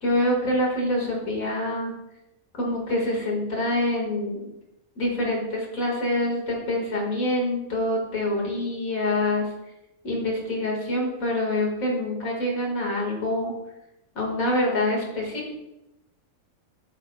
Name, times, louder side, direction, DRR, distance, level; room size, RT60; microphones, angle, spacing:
voice 1, 0.0-1.9 2.5-4.5 5.0-9.4 10.0-13.5 14.2-15.5, left 1 dB, 70° left, -1 dB, 2.4 m, -26 dB
8.5 x 7.8 x 2.3 m, 0.90 s
omnidirectional pair, 1.5 m